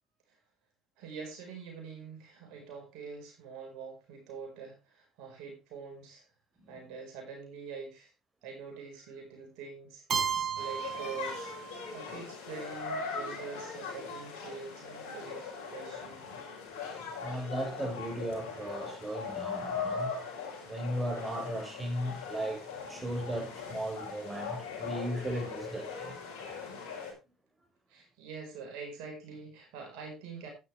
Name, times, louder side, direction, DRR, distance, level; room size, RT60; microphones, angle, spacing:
voice 1, 1.0-6.2 6.7-8.1 8.4-10.0 10.3-11.5 11.9-16.3 27.9-30.5, right 5 dB, 75° right, 4.7 m, -45 dB
Keyboard (musical), 10.1-12.0, right 6 dB, 50° right, 3.4 m, -34 dB
sound 1, 10.6-27.1, left 5 dB, 80° left, 5.1 m, -40 dB
voice 2, 17.2-20.1 20.6-26.2, right 1 dB, 20° right, 6.5 m, -36 dB
12.0 x 9.5 x 3.3 m
hypercardioid pair, 70°, 0 cm